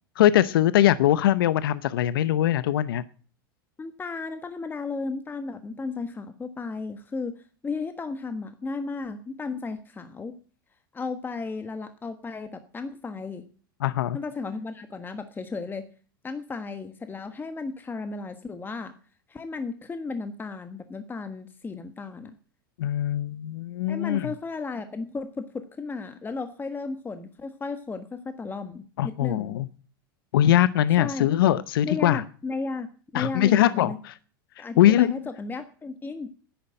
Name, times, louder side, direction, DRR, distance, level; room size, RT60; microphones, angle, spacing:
voice 1, 0.2-3.0 13.8-14.2 22.8-24.3 29.0-29.7 30.3-32.2 33.1-33.9 34.6-35.1, left 12 dB, 80° left, 16 dB, 0.8 m, -21 dB
voice 2, 3.8-10.4 10.9-13.5 14.1-15.8 16.2-18.9 19.3-22.4 23.9-29.6 31.0-31.3 31.8-34.0 34.6-36.3, left 4 dB, 15° left, 8 dB, 1.3 m, -34 dB
10.5 x 9.6 x 8.8 m, 0.42 s
hypercardioid pair, 105°, 12 cm